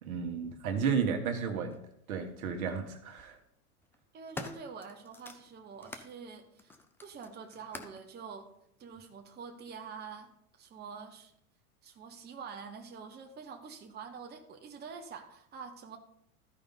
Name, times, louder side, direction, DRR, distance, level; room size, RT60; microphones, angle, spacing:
voice 1, 0.0-1.8 2.1-3.4, right 6 dB, 70° right, 5 dB, 1.6 m, -32 dB
sound 1, 1.7-1.8 2.9-3.3 3.8-6.1 6.6-8.1 8.9-9.0, left 2 dB, 5° left, 0.4 m, -47 dB
voice 2, 4.1-6.8 7.0-8.5 8.8-10.3 10.6-11.3 11.8-16.0, right 5 dB, 20° right, 4 dB, 1.1 m, -46 dB
14.0 x 5.2 x 3.9 m, 0.74 s
hypercardioid pair, 105°, 44 cm